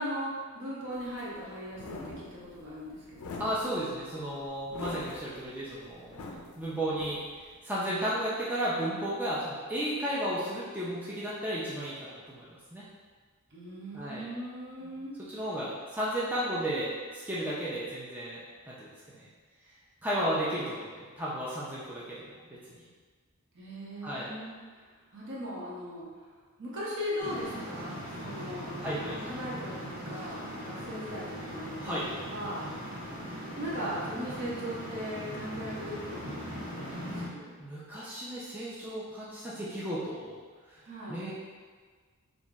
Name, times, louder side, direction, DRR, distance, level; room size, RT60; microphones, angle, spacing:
voice 1, 0.0-3.4 13.5-15.2 23.5-24.9 25.1-26.1 26.6-32.6 33.6-37.5 40.8-41.2, equal, 55° right, -6 dB, 0.8 m, -39 dB
sound 1, 0.9-7.6, left 2 dB, 70° left, 0.4 m, -44 dB
voice 2, 3.4-7.2 7.6-12.8 13.9-14.3 14.8-14.9 15.3-19.2 20.0-22.9 24.0-24.4 28.8-29.1 31.8-32.0 37.6-40.4 40.7-40.8 41.1-41.3, right 1 dB, 10° right, -8 dB, 0.3 m, -34 dB
sound 2, 27.2-37.3, equal, 85° right, 0.8 m, -40 dB
2.5 x 2.0 x 3.6 m, 1.6 s
head